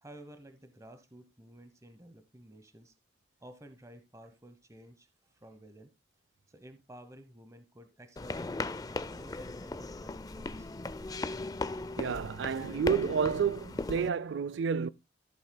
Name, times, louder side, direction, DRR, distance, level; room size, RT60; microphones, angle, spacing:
voice 1, 0.0-2.9 3.4-5.9 6.5-10.8, right 1 dB, 20° right, 0.9 m, -53 dB
sound 1, 8.2-14.1, left 2 dB, 20° left, 0.4 m, -37 dB
voice 2, 12.0-14.9, right 6 dB, 85° right, 0.4 m, -30 dB
14.5 x 7.9 x 2.2 m
head